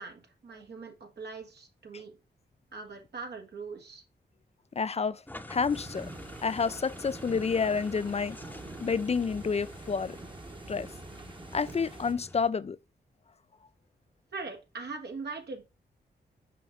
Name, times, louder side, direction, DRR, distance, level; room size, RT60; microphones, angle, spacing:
voice 1, 0.0-2.1 2.7-4.0 14.3-15.6, right 4 dB, 75° right, 1.8 m, -41 dB
voice 2, 4.8-5.2 5.5-6.1 6.4-10.2 10.7-10.9 11.5-12.8, left 5 dB, 40° left, 0.4 m, -29 dB
sound 1, 5.3-12.5, left 1 dB, 10° left, 0.9 m, -48 dB
sound 2, 5.7-12.1, right 2 dB, 30° right, 1.1 m, -45 dB
5.7 x 5.2 x 3.4 m
cardioid pair, 55°, 17 cm